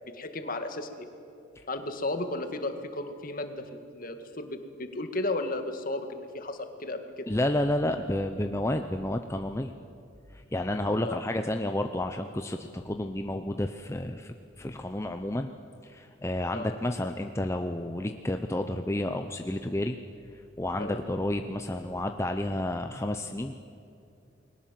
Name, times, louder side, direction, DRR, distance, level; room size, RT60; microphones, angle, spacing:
voice 1, 0.1-1.1 1.7-7.3 11.0-11.2 16.5-16.7 20.8-21.0, left 2 dB, 45° left, 7 dB, 2.0 m, -34 dB
voice 2, 7.3-9.7 10.3-15.5 15.8-20.0 20.6-23.5, left 1 dB, 15° left, 6 dB, 0.7 m, -30 dB
29.5 x 21.5 x 7.6 m, 2.6 s
head